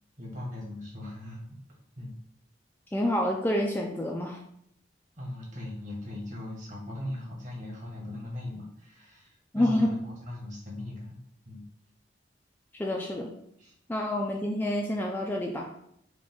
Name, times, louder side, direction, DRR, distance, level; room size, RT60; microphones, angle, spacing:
voice 1, 0.2-2.1 5.1-11.2 11.4-11.6 13.6-13.7, left 1 dB, 40° right, -3 dB, 1.3 m, -39 dB
voice 2, 2.9-4.4 9.5-9.9 12.7-13.3 13.9-15.7, left 1 dB, 10° left, 0 dB, 0.3 m, -28 dB
5.0 x 2.3 x 3.7 m, 0.72 s
head